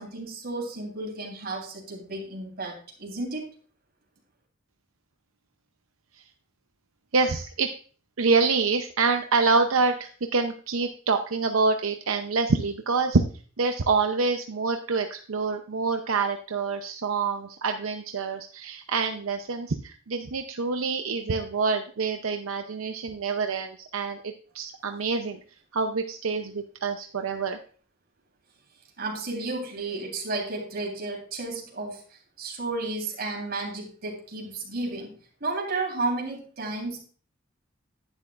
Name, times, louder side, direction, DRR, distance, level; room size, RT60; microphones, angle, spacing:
voice 1, 0.0-3.4 29.0-35.1 35.4-37.0, right 2 dB, 50° right, 0 dB, 3.6 m, -32 dB
voice 2, 7.1-7.7 8.2-13.2 13.6-25.4 25.7-27.6, right 4 dB, 85° right, 5 dB, 0.7 m, -26 dB
11.0 x 10.0 x 2.4 m, 0.42 s
head